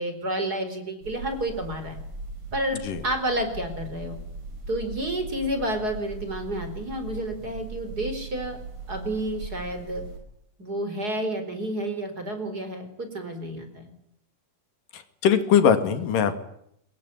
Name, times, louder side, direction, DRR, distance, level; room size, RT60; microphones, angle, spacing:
voice 1, 0.0-2.0 2.5-4.2 4.7-8.6 8.9-10.0 10.6-13.9, right 1 dB, 30° right, 8 dB, 4.7 m, -30 dB
sound 1, 1.0-10.2, right 3 dB, 70° right, 7.4 m, -39 dB
voice 2, 14.9-16.4, left 8 dB, 90° left, 10 dB, 3.7 m, -21 dB
24.0 x 22.0 x 9.8 m, 0.74 s
omnidirectional pair, 3.7 m